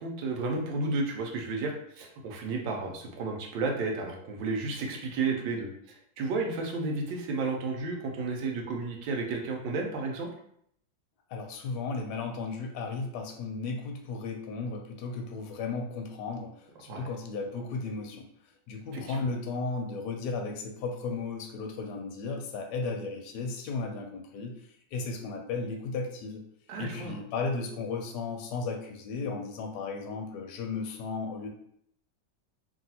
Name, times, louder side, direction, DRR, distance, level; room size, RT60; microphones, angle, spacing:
voice 1, 0.0-10.3 16.9-17.0 18.9-19.2 26.7-27.2, right 3 dB, 90° right, 1 dB, 1.3 m, -32 dB
voice 2, 11.3-18.3 18.7-24.5 24.9-26.4 26.8-31.5, left 4 dB, 75° left, 2 dB, 1.1 m, -35 dB
3.0 x 2.6 x 2.7 m, 0.70 s
omnidirectional pair, 1.9 m